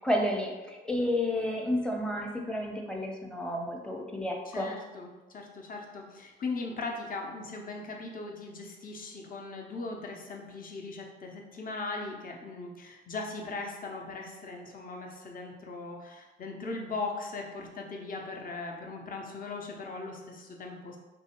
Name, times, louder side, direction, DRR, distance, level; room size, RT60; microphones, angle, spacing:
voice 1, 0.0-4.7, left 1 dB, 5° left, 0 dB, 0.7 m, -31 dB
voice 2, 4.5-21.0, left 3 dB, 45° left, 1 dB, 0.8 m, -39 dB
3.1 x 2.7 x 4.3 m, 1.2 s
cardioid pair, 90°, 20 cm